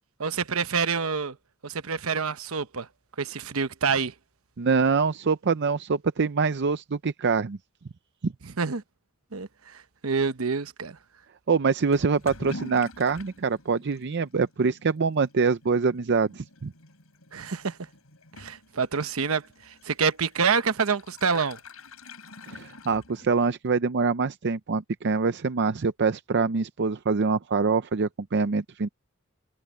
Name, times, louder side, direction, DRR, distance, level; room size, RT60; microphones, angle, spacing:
voice 1, 0.2-1.4 1.6-2.9 3.2-4.1 8.4-8.8 9.3-11.0 17.3-17.8 18.4-21.6, right 5 dB, 75° right, 1.0 m, -27 dB
voice 2, 4.6-7.6 8.2-8.3 11.5-16.7 22.5-28.9, right 5 dB, 55° right, 0.6 m, -25 dB
Toilet flush / Liquid, 11.9-23.6, left 2 dB, 90° left, 5.1 m, -46 dB
head